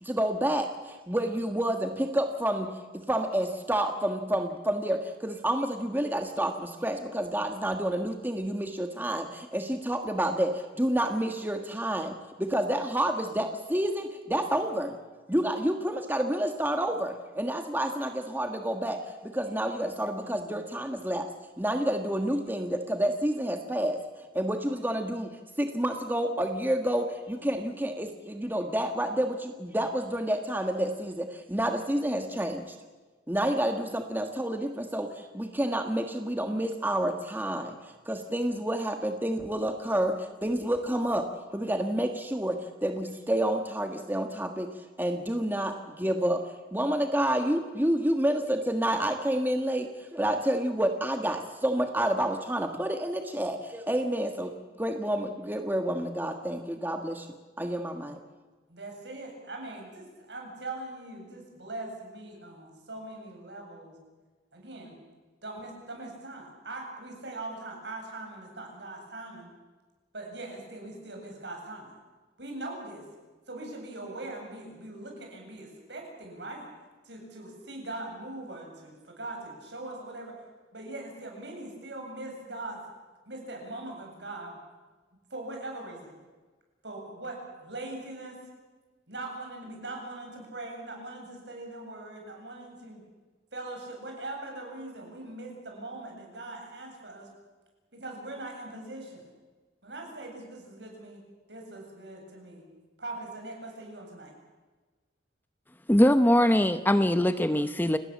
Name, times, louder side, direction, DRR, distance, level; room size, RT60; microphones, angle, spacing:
voice 1, 0.0-14.9 15.3-21.3 21.6-24.0 24.3-32.8 33.3-41.3 41.5-44.7 45.0-46.4 46.7-57.3 57.6-58.2, right 1 dB, 10° right, 5 dB, 1.5 m, -29 dB
voice 2, 58.7-64.0 64.5-64.9 65.4-69.5 70.1-71.9 72.4-73.0 73.5-76.7 77.0-80.4 80.7-82.8 83.3-84.6 85.3-86.2 86.8-88.4 89.1-93.0 93.5-97.3 97.9-99.2 99.8-101.2 101.5-102.6 103.0-104.3, right 2 dB, 70° right, 1 dB, 7.8 m, -41 dB
voice 3, 105.9-108.0, left 1 dB, 10° left, 10 dB, 0.8 m, -22 dB
29.5 x 19.0 x 7.4 m, 1.3 s
head